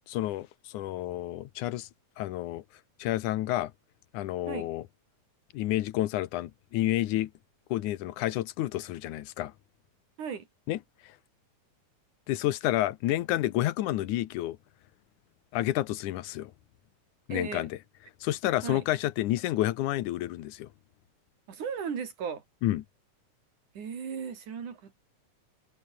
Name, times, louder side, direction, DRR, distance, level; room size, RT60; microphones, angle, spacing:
voice 1, 0.1-1.9 2.2-2.6 3.0-3.7 4.1-4.8 5.5-7.3 7.7-9.5 10.7-10.8 11.0-11.1 12.3-14.6 15.5-16.5 17.3-17.8 18.2-20.7 22.6-22.8, left 15 dB, 85° left, 2.4 m, -30 dB
voice 2, 17.3-17.7 18.6-18.8 21.5-22.4 23.7-24.9, right 6 dB, 90° right, 4.8 m, -36 dB
omnidirectional pair, 3.4 m